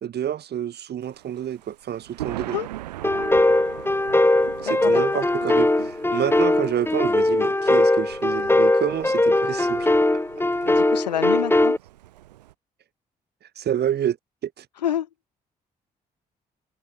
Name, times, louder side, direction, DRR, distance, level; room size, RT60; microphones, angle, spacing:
voice 1, 0.0-2.6 4.6-10.0 13.6-14.2 14.4-14.6, right 10 dB, 55° right, 1.4 m, -28 dB
Thunder, 1.0-12.5, right 15 dB, 80° right, 4.6 m, -41 dB
sound 1, 3.0-11.8, left 2 dB, 10° left, 1.7 m, -20 dB
voice 2, 4.6-5.0 10.6-11.8 14.8-15.1, left 10 dB, 85° left, 1.4 m, -28 dB
figure-of-eight pair, 40°, 21 cm